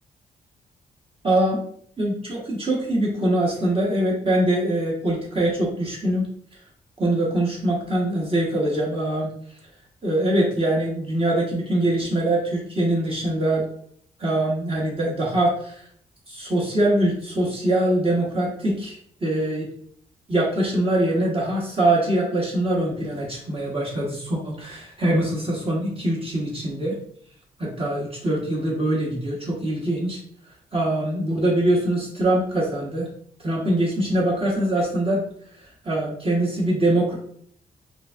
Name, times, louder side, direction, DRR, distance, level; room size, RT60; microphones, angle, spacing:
voice 1, 1.2-1.6 2.0-6.3 7.0-9.3 10.0-13.7 14.2-15.9 16.3-19.7 20.3-27.0 27.6-30.2 30.7-33.1 33.4-35.2 35.6-37.1, right 1 dB, 30° right, -4 dB, 1.1 m, -23 dB
3.8 x 2.5 x 2.4 m, 0.63 s
supercardioid pair, 45°, 18 cm